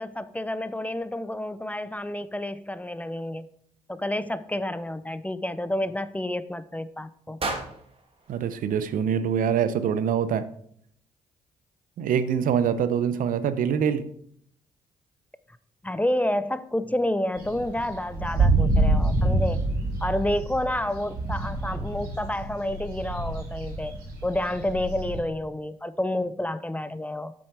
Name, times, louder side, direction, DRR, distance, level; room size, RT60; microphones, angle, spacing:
voice 1, 0.0-3.5 3.9-7.4 15.8-19.6 20.0-24.0 24.2-27.3, left 1 dB, 10° left, 15 dB, 0.5 m, -29 dB
sound 1, 7.4-9.5, right 3 dB, 40° right, 2.0 m, -36 dB
voice 2, 8.3-10.4 12.0-14.1, right 8 dB, 70° right, 13 dB, 0.6 m, -24 dB
sound 2, 17.4-25.2, right 2 dB, 85° right, 2.6 m, -27 dB
7.8 x 6.2 x 4.7 m, 0.67 s
supercardioid pair, 55°, 15 cm